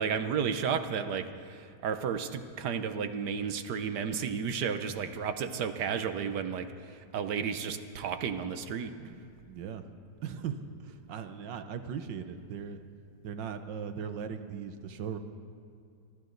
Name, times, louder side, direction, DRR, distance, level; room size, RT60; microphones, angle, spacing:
voice 1, 0.0-6.6 7.1-8.9, right 7 dB, 70° right, 9 dB, 1.5 m, -32 dB
voice 2, 8.9-9.2 9.5-9.9 10.2-12.8 13.2-15.2, right 7 dB, 85° right, 9 dB, 1.6 m, -39 dB
25.0 x 13.5 x 4.0 m, 2.3 s
omnidirectional pair, 1.9 m